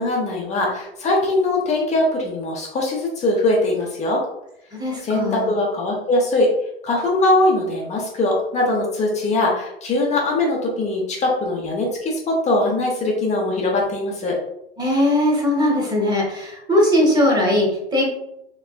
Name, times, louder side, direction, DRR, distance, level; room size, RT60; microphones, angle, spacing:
voice 1, 0.0-4.2 5.0-6.5 6.8-14.4, left 2 dB, 20° left, -1 dB, 0.8 m, -21 dB
voice 2, 4.7-5.6 14.8-18.1, left 1 dB, 15° right, 0 dB, 1.1 m, -19 dB
3.2 x 3.1 x 2.2 m, 0.79 s
figure-of-eight pair, 95°, 30 cm